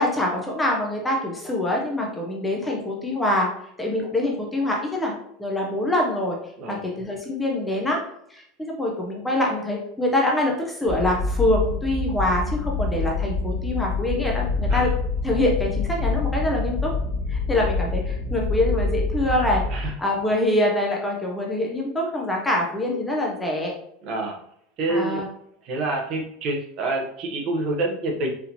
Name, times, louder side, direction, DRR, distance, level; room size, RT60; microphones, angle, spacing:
voice 1, 0.0-3.5 3.8-6.4 6.7-8.0 8.3-14.9 15.2-16.9 17.3-23.7 24.9-25.2, left 1 dB, 5° left, -1 dB, 0.4 m, -25 dB
sound 1, 10.8-19.9, left 3 dB, 40° left, 0.8 m, -26 dB
voice 2, 24.0-24.4 24.8-25.2 25.6-28.3, right 2 dB, 35° right, 1 dB, 0.7 m, -27 dB
4.2 x 2.6 x 2.7 m, 0.72 s
supercardioid pair, 175°, 0 cm